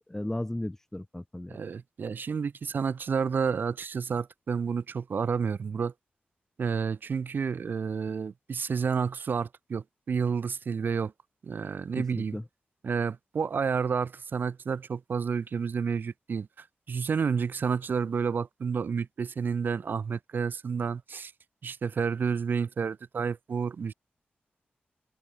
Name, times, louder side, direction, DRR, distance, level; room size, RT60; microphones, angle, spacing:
voice 1, 0.0-1.6 12.0-12.4, left 1 dB, 10° left, 4.0 m, -35 dB
voice 2, 1.5-5.9 6.6-11.1 11.4-12.4 12.8-21.3 21.6-23.9, right 6 dB, 65° right, 1.5 m, -30 dB
wide cardioid pair, 135°, 4 cm